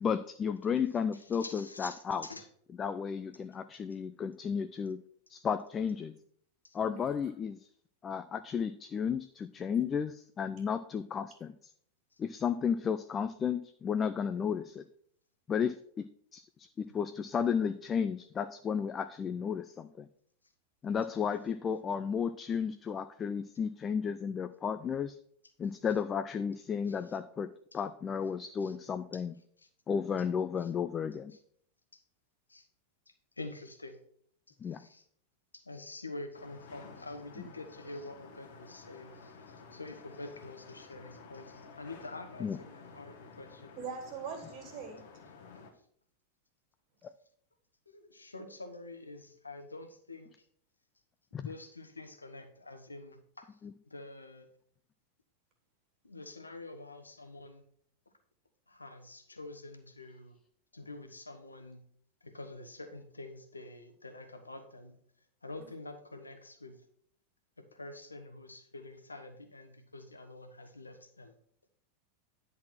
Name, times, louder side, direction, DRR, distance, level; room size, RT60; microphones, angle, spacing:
voice 1, 0.0-2.3 2.8-5.0 5.3-6.2 6.7-7.6 8.0-11.5 12.2-14.8 15.5-20.1 20.8-25.2 25.6-29.3 29.9-31.3 34.6-34.8 42.4-42.6 47.0-47.1 51.3-51.5 53.6-53.7, left 7 dB, 25° left, 11 dB, 0.4 m, -33 dB
voice 2, 1.1-2.4 6.6-6.8 16.9-17.0 26.9-27.2 27.7-27.8 28.6-28.7 29.1-29.2 29.6-29.7 30.6-30.7 31.3-31.4 31.9-32.0 32.5-32.7 33.1-34.0 34.6-35.0 35.5-43.7 47.9-50.5 51.3-53.5 53.9-54.5 56.0-57.6 58.7-60.4 60.7-61.8 62.2-65.0 65.4-66.8 67.6-71.3, left 2 dB, 80° left, 6 dB, 1.1 m, -47 dB
sound 1, 36.3-45.7, left 5 dB, 55° left, 1.4 m, -53 dB
voice 3, 43.8-45.0 65.6-65.7, right 5 dB, 40° right, 4 dB, 2.3 m, -42 dB
10.0 x 4.1 x 6.0 m, 0.64 s
figure-of-eight pair, 90°, 0 cm